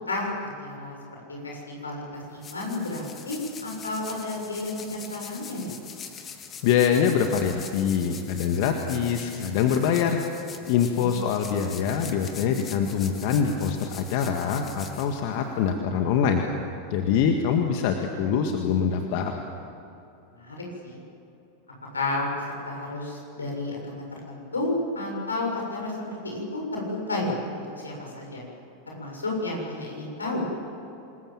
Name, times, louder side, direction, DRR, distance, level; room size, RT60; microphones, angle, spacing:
voice 1, 0.1-1.0 1.3-5.7 10.9-11.3 20.4-21.0 21.9-22.3 22.7-28.4 28.9-30.5, left 2 dB, 90° left, -1 dB, 7.1 m, -32 dB
sound 1, 2.1-15.7, left 6 dB, 30° left, 2.4 m, -43 dB
voice 2, 6.6-10.2 10.7-16.4 16.9-19.4, left 7 dB, 55° left, 4 dB, 1.8 m, -24 dB
27.0 x 21.0 x 7.5 m, 2.9 s
hypercardioid pair, 90°, 0 cm